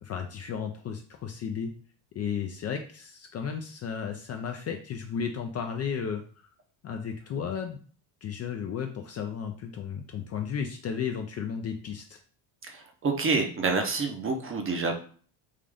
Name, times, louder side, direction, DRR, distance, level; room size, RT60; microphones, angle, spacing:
voice 1, 0.0-1.7 2.1-6.5 6.8-7.8 8.2-12.2, left 7 dB, 35° left, 4 dB, 0.4 m, -34 dB
voice 2, 12.6-14.9, right 4 dB, 30° right, 4 dB, 0.7 m, -28 dB
3.7 x 2.5 x 3.3 m, 0.43 s
cardioid pair, 110°, 46 cm